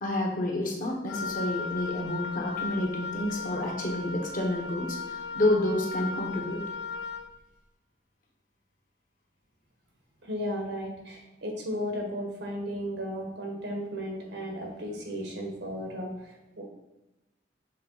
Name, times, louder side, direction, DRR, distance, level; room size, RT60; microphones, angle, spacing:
voice 1, 0.0-6.6, left 1 dB, 50° left, 0 dB, 1.2 m, -29 dB
Wind instrument woodwind instrument, 1.1-7.3, left 4 dB, 75° left, 0.6 m, -36 dB
voice 2, 10.2-16.6, equal, 80° right, 1 dB, 1.5 m, -35 dB
6.6 x 3.9 x 4.1 m, 1.0 s
head